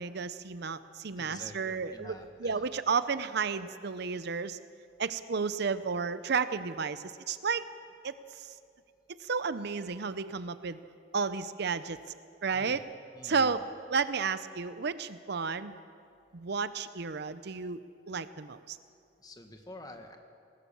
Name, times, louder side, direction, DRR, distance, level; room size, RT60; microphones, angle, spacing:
voice 1, 0.0-4.6 5.0-7.6 8.0-8.5 9.2-10.8 11.1-12.0 12.4-12.8 13.2-13.6 13.9-15.8 16.3-17.8 18.1-18.8, right 5 dB, 60° right, 13 dB, 0.6 m, -32 dB
voice 2, 1.2-2.6 12.5-12.8 13.1-13.6 19.2-20.2, left 1 dB, 20° left, 4 dB, 1.7 m, -48 dB
20.0 x 19.5 x 7.1 m, 2.4 s
head